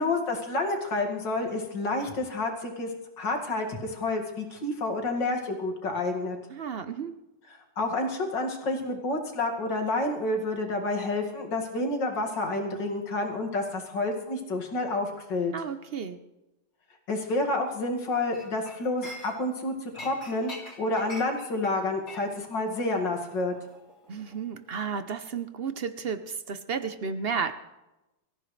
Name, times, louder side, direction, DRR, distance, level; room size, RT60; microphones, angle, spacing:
voice 1, 0.0-2.9 3.2-6.4 7.8-15.5 17.1-20.5 20.8-23.5, left 2 dB, 75° left, 2 dB, 2.9 m, -29 dB
voice 2, 6.5-7.2 15.5-16.2 24.1-27.5, right 6 dB, 55° right, 10 dB, 0.6 m, -33 dB
Chink clink, 18.3-19.6 19.9-24.5 24.8-25.1, left 1 dB, 45° left, 3.9 m, -45 dB
25.0 x 15.0 x 3.3 m, 0.98 s
omnidirectional pair, 2.0 m